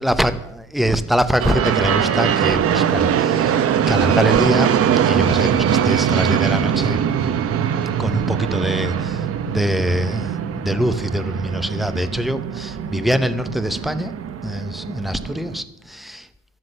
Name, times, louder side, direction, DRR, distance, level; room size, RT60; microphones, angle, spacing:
voice 1, 0.0-3.6 3.9-4.7 5.0-7.0 8.0-14.1 14.4-16.3, equal, ahead, 11 dB, 0.8 m, -23 dB
sound 1, 1.4-15.6, right 8 dB, 45° right, 1.0 m, -21 dB
12.5 x 11.5 x 6.6 m, 0.78 s
cardioid pair, 150°, 32 cm